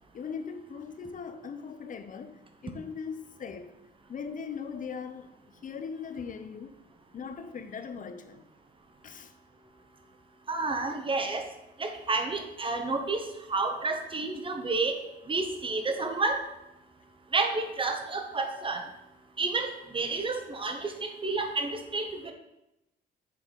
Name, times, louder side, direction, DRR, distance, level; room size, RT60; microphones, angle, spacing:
voice 1, 0.1-3.7 4.1-6.7 7.1-8.5 9.0-9.3, left 6 dB, 40° left, 0.6 m, -40 dB
voice 2, 10.5-11.5 11.8-13.2 13.5-15.0 15.3-16.4 17.3-18.8 19.4-22.3, right 3 dB, 25° right, 0.9 m, -30 dB
6.7 x 3.9 x 4.6 m
cardioid pair, 90°, 20 cm